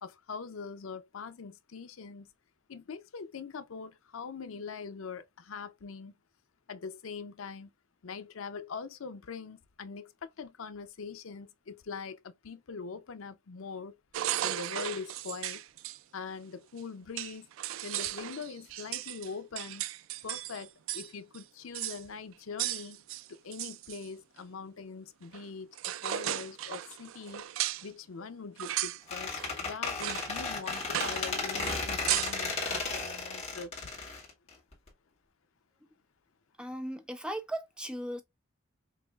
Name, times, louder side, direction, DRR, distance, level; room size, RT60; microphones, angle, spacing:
voice 1, 0.0-2.3 2.7-6.1 6.7-7.7 8.0-14.0 14.4-15.6 16.1-17.5 17.8-19.8 20.2-23.0 23.3-27.5 27.8-33.8, left 5 dB, 85° left, 0.6 m, -42 dB
sound 1, 14.1-16.0 16.8-16.9 17.2-21.1 21.3-21.4 21.7-22.0 22.6-24.1 25.3-25.5 25.8-27.9 28.6-29.0 29.4-29.5 30.0-30.3 30.6-31.3 31.6-32.4, right 13 dB, 80° right, 0.3 m, -35 dB
Squeak, 29.1-34.9, left 4 dB, 30° left, 1.8 m, -34 dB
voice 2, 36.6-38.2, right 1 dB, 5° right, 0.6 m, -37 dB
5.6 x 2.5 x 2.3 m
head